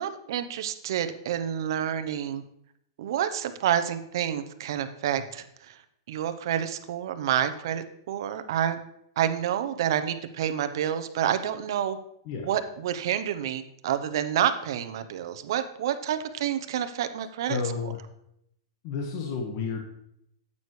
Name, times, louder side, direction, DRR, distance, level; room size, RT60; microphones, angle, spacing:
voice 1, 0.0-2.4 3.0-5.8 6.1-8.8 9.2-12.0 12.4-17.6, right 10 dB, 65° right, 10 dB, 0.8 m, -28 dB
voice 2, 17.5-18.0 18.8-19.8, left 5 dB, 45° left, 1 dB, 1.4 m, -31 dB
9.4 x 8.5 x 3.2 m, 0.76 s
hypercardioid pair, 150°, 2 cm